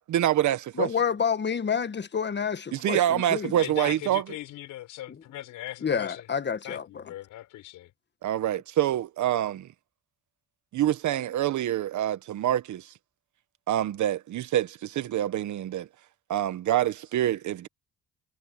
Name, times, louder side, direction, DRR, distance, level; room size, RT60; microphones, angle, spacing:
voice 1, 0.1-0.9 2.7-4.2 8.2-9.7 10.7-12.9 13.7-15.9 16.3-17.7, right 12 dB, 70° right, 1.3 m, -26 dB
voice 2, 0.8-3.6 5.1-5.2 5.8-7.0, left 7 dB, 35° left, 1.5 m, -29 dB
voice 3, 3.6-6.2 6.6-7.9, left 14 dB, 90° left, 4.3 m, -39 dB
cardioid pair, 90°, 30 cm